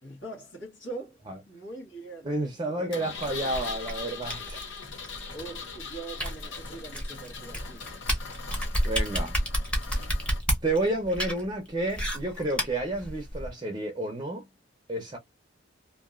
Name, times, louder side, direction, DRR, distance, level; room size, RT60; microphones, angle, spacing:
voice 1, 0.0-3.1 5.3-7.9, right 3 dB, 70° left, 1.6 m, -43 dB
voice 2, 2.2-4.6 8.8-9.4 10.6-14.4 14.9-15.2, right 2 dB, 25° right, 0.6 m, -30 dB
Engine, 2.9-10.4, left 5 dB, 85° left, 1.0 m, -41 dB
sound 1, 3.2-13.5, equal, 5° left, 1.0 m, -31 dB
2.8 x 2.6 x 2.4 m
head